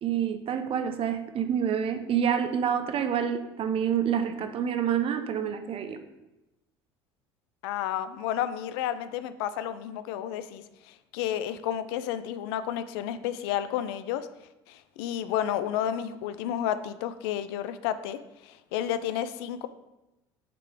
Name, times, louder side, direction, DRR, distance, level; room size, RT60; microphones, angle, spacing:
voice 1, 0.0-6.0, right 8 dB, 45° right, 8 dB, 0.7 m, -27 dB
voice 2, 7.6-14.3 14.7-19.7, left 10 dB, 75° left, 12 dB, 0.4 m, -31 dB
5.7 x 3.9 x 4.8 m, 0.98 s
hypercardioid pair, 65°, 13 cm